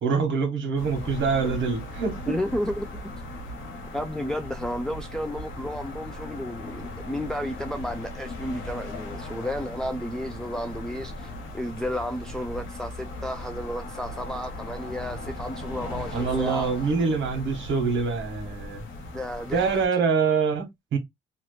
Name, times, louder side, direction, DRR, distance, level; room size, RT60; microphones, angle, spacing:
voice 1, 0.0-2.3 16.1-18.8 19.5-21.0, right 5 dB, 70° right, 1.4 m, -25 dB
sound 1, 0.8-19.9, left 1 dB, 75° left, 1.2 m, -38 dB
voice 2, 2.3-3.1 3.9-16.7 19.1-19.8, left 1 dB, 5° left, 0.3 m, -32 dB
3.0 x 2.4 x 3.1 m
cardioid pair, 90°, 20 cm